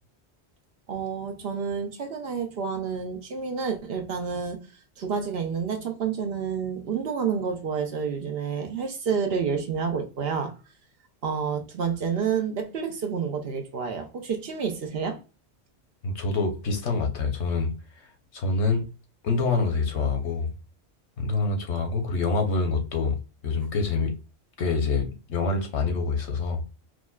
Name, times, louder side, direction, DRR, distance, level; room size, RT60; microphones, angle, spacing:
voice 1, 0.9-4.6 5.0-10.5 11.2-15.2, right 6 dB, 65° right, 0.9 m, -29 dB
voice 2, 16.0-17.7 18.3-18.9 19.2-20.5 21.2-23.2 23.4-24.1 24.6-26.6, left 4 dB, 85° left, 1.2 m, -26 dB
4.9 x 2.1 x 2.2 m
omnidirectional pair, 1.1 m